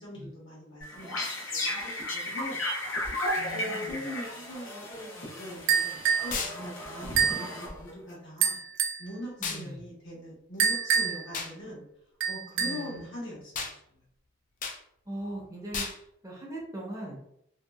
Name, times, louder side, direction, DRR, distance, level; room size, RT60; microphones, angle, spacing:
voice 1, 0.0-2.6 3.5-5.8 6.2-8.6 9.0-11.8 12.3-14.0, left 1 dB, 65° left, -5 dB, 1.2 m, -41 dB
sound 1, 0.8-8.1, left 1 dB, 80° left, 0.7 m, -35 dB
voice 2, 3.3-4.0 9.4-9.8 12.6-13.0 15.1-15.8 16.2-17.2, right 1 dB, 15° right, -3 dB, 0.6 m, -40 dB
sound 2, 5.7-6.3 7.2-7.5 8.4-9.1 10.6-11.3 12.2-12.9, right 7 dB, 65° right, 0.4 m, -26 dB
sound 3, 6.3-6.6 9.4-9.6 11.3-11.5 13.5-13.8 14.6-14.8 15.7-16.0, left 5 dB, 40° left, 0.3 m, -33 dB
2.7 x 2.2 x 2.2 m, 0.74 s
head